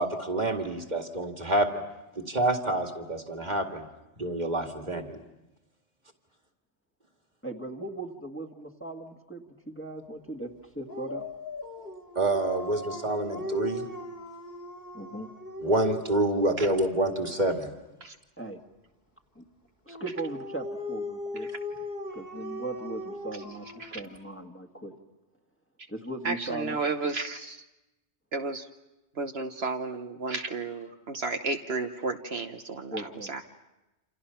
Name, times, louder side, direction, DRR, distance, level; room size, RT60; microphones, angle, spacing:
voice 1, 0.0-1.8 2.2-3.9 4.2-5.2 12.2-13.8 15.6-17.7, right 1 dB, 40° right, 4 dB, 2.2 m, -27 dB
voice 2, 7.4-11.3 14.9-15.3 18.4-18.6 19.4-19.5 19.9-21.5 22.1-24.9 25.9-27.1 32.9-33.3, right 2 dB, 10° left, 2 dB, 1.8 m, -38 dB
Dog, 10.9-16.7 19.9-24.5, left 2 dB, 40° left, 2.6 m, -38 dB
voice 3, 26.2-27.6 28.3-28.7 29.2-33.4, right 3 dB, 65° right, 5 dB, 1.3 m, -33 dB
28.5 x 27.5 x 5.7 m, 0.99 s
omnidirectional pair, 1.2 m